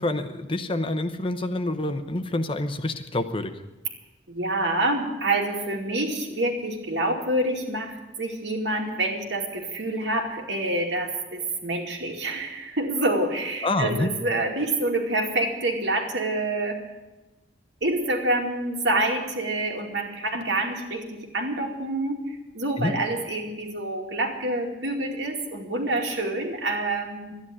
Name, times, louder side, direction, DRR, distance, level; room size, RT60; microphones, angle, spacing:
voice 1, 0.0-3.6 13.6-14.1 22.8-22.9, left 2 dB, 30° left, 9 dB, 0.8 m, -27 dB
voice 2, 4.3-16.8 17.8-22.2 22.5-27.3, right 2 dB, 80° right, 1 dB, 2.5 m, -27 dB
12.5 x 10.0 x 9.6 m, 1.1 s
head